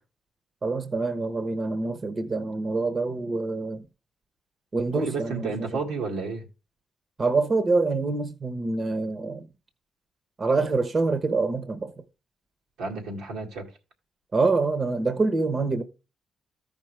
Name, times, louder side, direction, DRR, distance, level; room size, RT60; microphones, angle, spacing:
voice 1, 0.6-3.8 4.7-5.7 7.2-9.5 10.4-11.9 14.3-15.8, right 3 dB, 45° right, 1.1 m, -26 dB
voice 2, 4.9-6.4 12.8-13.7, right 4 dB, 90° right, 2.0 m, -31 dB
14.0 x 5.3 x 3.3 m
supercardioid pair, 55°, 0 cm